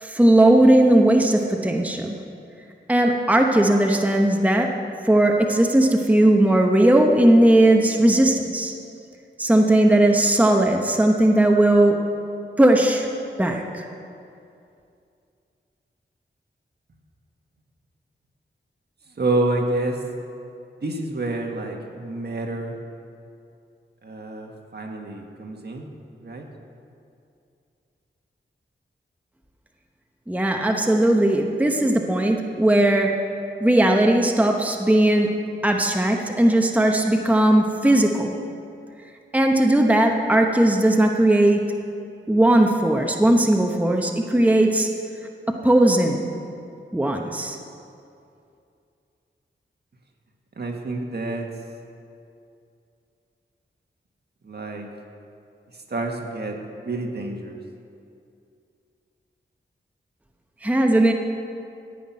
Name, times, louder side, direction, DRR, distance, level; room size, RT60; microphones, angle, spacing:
voice 1, 0.0-2.2 2.9-4.7 5.1-8.7 9.4-12.0 12.6-13.1 13.4-13.8 30.3-33.1 33.6-35.3 35.6-38.3 39.3-41.6 42.3-44.9 45.5-46.2 46.9-47.6 60.6-61.1, right 1 dB, 5° right, 2 dB, 0.9 m, -18 dB
voice 2, 19.2-20.0 20.8-22.7 24.0-25.9 26.2-26.4 50.6-51.5 54.4-54.9 55.9-56.6 56.8-57.6, right 2 dB, 55° right, 2 dB, 1.6 m, -28 dB
15.0 x 5.9 x 9.5 m, 2.5 s
wide cardioid pair, 90°, 20 cm